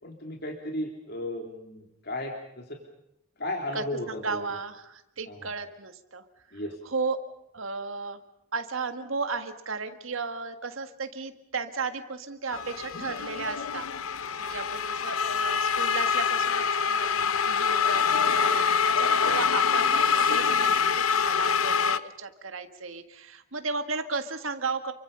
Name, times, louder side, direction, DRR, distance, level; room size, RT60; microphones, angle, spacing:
voice 1, 0.0-2.8 3.4-4.4 5.3-5.4 6.5-6.8, left 1 dB, 50° left, 2 dB, 3.2 m, -35 dB
voice 2, 3.7-7.2 7.5-8.2 8.5-24.9, right 4 dB, 70° right, 8 dB, 1.7 m, -35 dB
sound 1, 12.5-22.0, left 6 dB, 90° left, 0.9 m, -25 dB
29.5 x 24.0 x 5.5 m, 0.80 s
head